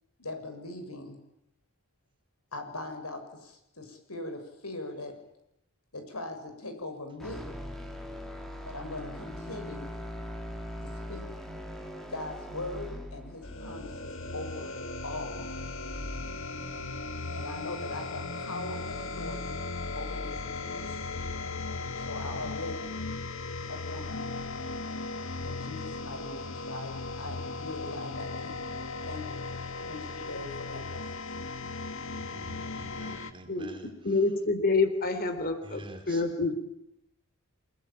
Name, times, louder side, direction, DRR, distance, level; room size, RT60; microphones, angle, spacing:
voice 1, 0.2-1.2 2.5-5.2 5.9-7.5 8.6-9.9 10.8-11.2 12.1-15.5 17.3-19.6 20.0-21.1 21.9-22.9 23.6-24.2 25.4-28.7 29.1-29.4 29.9-31.0, left 2 dB, 85° left, 7 dB, 6.8 m, -40 dB
sound 1, 7.2-15.3, equal, ahead, 3.6 m, -41 dB
sound 2, 13.4-33.3, left 3 dB, 60° left, 2.2 m, -37 dB
voice 2, 32.2-33.9 35.6-36.2, right 1 dB, 25° right, 4 dB, 4.4 m, -47 dB
voice 3, 33.5-36.6, left 3 dB, 45° left, 10 dB, 3.6 m, -28 dB
29.5 x 20.0 x 8.8 m, 0.83 s
head